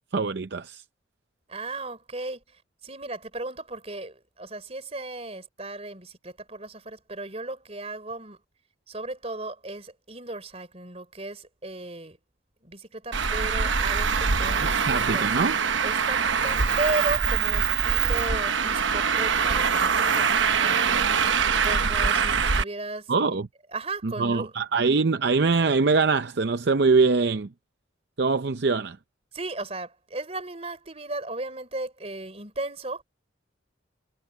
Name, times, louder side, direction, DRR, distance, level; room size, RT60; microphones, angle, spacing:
voice 1, 0.1-0.8 14.6-15.5 23.1-23.5 24.0-27.5 28.2-29.0, right 4 dB, 60° right, 0.6 m, -23 dB
voice 2, 1.5-8.4 8.9-12.2 12.6-15.3 15.8-23.4 23.7-24.5 29.3-33.0, right 2 dB, 30° right, 4.0 m, -36 dB
Traffic noise roadway noise, 13.1-22.6, right 6 dB, 75° right, 1.0 m, -23 dB
head